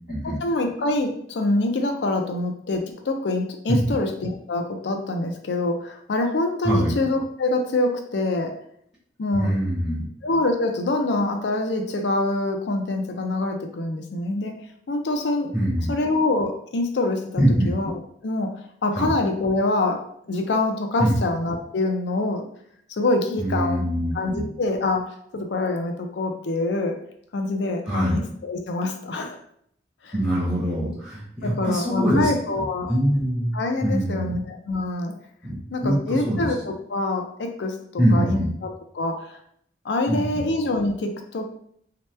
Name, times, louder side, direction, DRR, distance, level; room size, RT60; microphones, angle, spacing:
voice 1, 0.4-8.5 9.2-9.5 10.2-14.6 14.9-15.5 15.9-17.9 18.2-20.0 20.3-22.4 22.9-23.9 24.1-27.0 27.3-29.4 30.0-30.1 31.4-32.9 33.5-35.1 35.7-38.4 38.9-39.3 39.8-41.6, left 2 dB, 85° left, 4 dB, 0.5 m, -25 dB
voice 2, 9.3-10.1 15.5-15.9 17.4-17.7 18.9-19.1 21.0-21.2 23.4-24.5 27.9-28.2 30.1-32.3 32.6-33.5 33.8-34.3 35.4-35.5 35.8-36.5 38.0-38.5 40.1-40.5, equal, 20° right, -7 dB, 0.7 m, -23 dB
2.8 x 2.2 x 3.2 m, 0.67 s
head